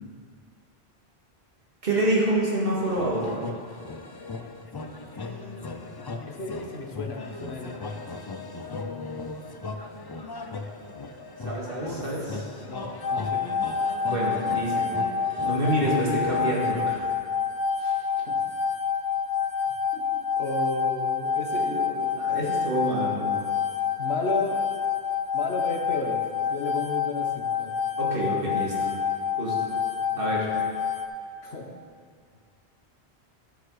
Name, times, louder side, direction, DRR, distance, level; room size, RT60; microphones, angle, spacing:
voice 1, 1.8-3.4 11.4-12.4 14.0-14.8 15.4-17.0 17.8-17.9 22.2-23.3 28.0-28.7 29.4-29.5 30.2-30.5, right 1 dB, 60° right, -5 dB, 2.2 m, -27 dB
sound 1, 2.8-17.0, left 3 dB, 35° left, 0.4 m, -37 dB
voice 2, 5.3-8.1 8.7-9.5 12.0-12.2 12.6-13.5 18.3-18.4 20.4-22.6 24.0-24.6 25.3-27.8 30.1-30.3 31.4-31.7, left 3 dB, 75° left, 1 dB, 1.4 m, -34 dB
sound 2, 13.0-31.1, left 6 dB, 50° left, 0.7 m, -28 dB
12.5 x 6.5 x 4.7 m, 2.1 s
omnidirectional pair, 1.1 m